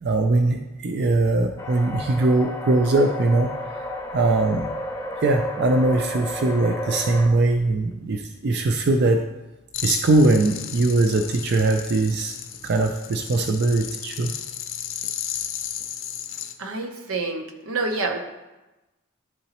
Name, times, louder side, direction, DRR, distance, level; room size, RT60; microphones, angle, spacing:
voice 1, 0.0-3.5 4.1-4.7 5.2-9.2 9.8-12.3 12.6-14.3, right 2 dB, 50° right, 4 dB, 0.4 m, -21 dB
sound 1, 1.6-7.3, left 1 dB, 15° left, 0.6 m, -32 dB
sound 2, 9.7-16.5, left 10 dB, 60° left, 0.5 m, -34 dB
voice 2, 16.6-18.2, right 3 dB, 85° right, 3 dB, 0.9 m, -27 dB
11.0 x 3.9 x 2.9 m, 1.1 s
head